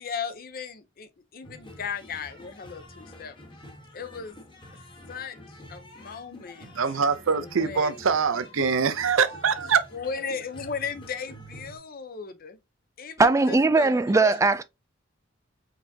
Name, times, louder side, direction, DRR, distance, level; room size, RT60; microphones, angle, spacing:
voice 1, 0.0-3.3 3.9-4.4 5.1-6.7 7.4-8.0 9.9-12.6 13.0-14.4, left 6 dB, 50° left, 0.7 m, -36 dB
sound 1, 1.4-11.8, equal, 25° left, 1.3 m, -48 dB
voice 2, 6.6-9.9, right 6 dB, 85° right, 0.6 m, -24 dB
voice 3, 13.2-14.6, right 3 dB, 15° right, 0.3 m, -20 dB
4.8 x 3.5 x 2.7 m
head